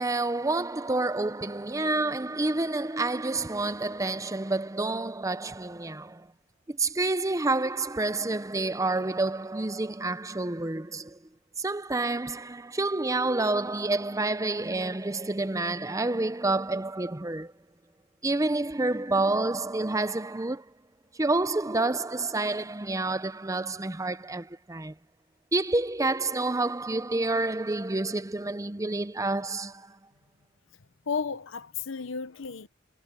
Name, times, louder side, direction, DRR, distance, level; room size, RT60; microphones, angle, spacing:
voice 1, 0.0-6.3 6.7-11.2 11.6-17.5 18.2-20.7 21.2-24.9 25.5-30.0, right 2 dB, 15° right, 0.6 m, -28 dB
voice 2, 31.1-32.7, left 5 dB, 80° left, 0.9 m, -33 dB
head